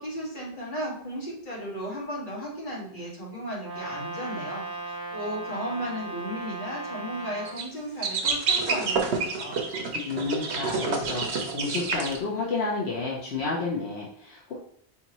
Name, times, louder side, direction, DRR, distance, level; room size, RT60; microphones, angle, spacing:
voice 1, 0.0-9.1 9.3-9.6, equal, 50° left, -5 dB, 1.8 m, -35 dB
Brass instrument, 3.6-7.6, right 3 dB, 20° left, 1.3 m, -36 dB
sound 1, 7.4-7.6 8.0-12.2, right 4 dB, 85° right, 1.0 m, -28 dB
voice 2, 9.9-14.6, left 4 dB, 80° left, -4 dB, 1.1 m, -31 dB
4.2 x 3.5 x 3.0 m, 0.62 s
omnidirectional pair, 1.1 m